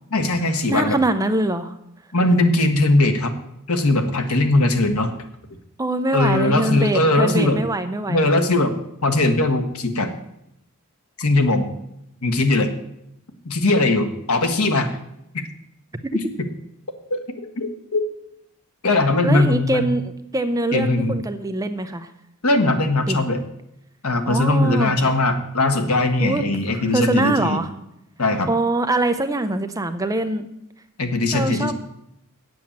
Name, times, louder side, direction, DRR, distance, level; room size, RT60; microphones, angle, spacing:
voice 1, 0.1-1.0 2.1-3.3 3.7-5.1 6.1-7.6 8.1-8.7 9.0-10.1 11.2-11.7 12.2-12.7 13.4-14.9 16.1-16.2 17.1-17.2 17.6-18.0 18.8-19.9 20.7-21.2 22.4-23.4 24.0-27.6 28.2-28.5 31.0-31.7, left 2 dB, 80° left, 6 dB, 1.3 m, -20 dB
voice 2, 0.7-1.7 5.8-8.3 19.2-22.1 23.1-23.2 24.3-24.9 26.2-26.4 26.7-27.7 28.5-30.5 31.3-31.7, right 1 dB, 15° right, 8 dB, 0.7 m, -23 dB
8.6 x 7.8 x 7.3 m, 0.81 s
head